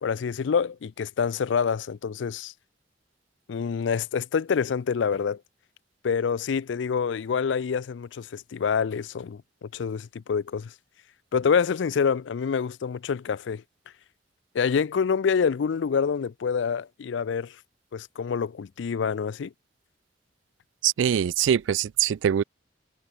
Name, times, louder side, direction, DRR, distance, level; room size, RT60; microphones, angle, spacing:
voice 1, 0.0-2.5 3.5-5.4 6.0-10.7 11.3-13.6 14.5-17.5 17.9-19.5, left 6 dB, 70° left, 0.4 m, -26 dB
voice 2, 20.8-22.4, right 9 dB, 80° right, 0.3 m, -23 dB
head